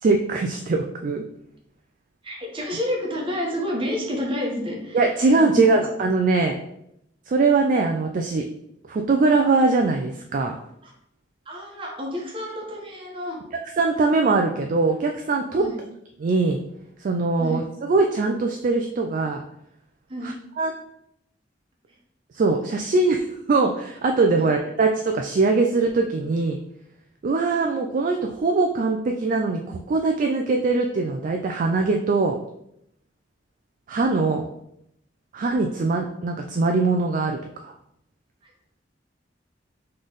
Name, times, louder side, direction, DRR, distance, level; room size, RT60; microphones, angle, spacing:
voice 1, 0.0-1.2 4.9-6.6 7.3-8.4 8.9-10.5 13.8-15.6 16.2-16.6 17.0-19.4 20.2-20.7 22.3-26.6 27.2-32.4 33.9-34.5 35.3-37.7, right 3 dB, 45° right, 3 dB, 0.3 m, -22 dB
voice 2, 2.2-5.0 5.4-5.7 10.8-10.9 11.5-13.4 15.6-15.8 17.4-17.6 20.1-20.3, equal, 30° right, -2 dB, 1.2 m, -29 dB
4.0 x 3.2 x 4.0 m, 0.77 s
head